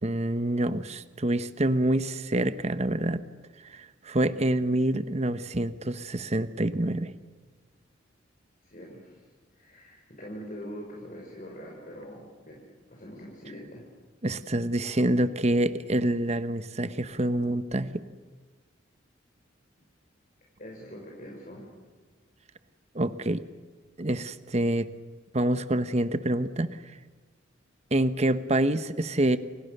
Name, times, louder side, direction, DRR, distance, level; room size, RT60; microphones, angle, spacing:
voice 1, 0.0-3.2 3.6-7.1 14.2-18.0 22.9-23.4 24.0-24.9 25.3-26.8 27.9-29.4, right 1 dB, 35° right, 12 dB, 1.0 m, -26 dB
voice 2, 8.6-9.2 9.5-13.9 20.6-21.7, equal, 45° left, -2 dB, 5.8 m, -43 dB
30.0 x 27.0 x 6.7 m, 1.4 s
head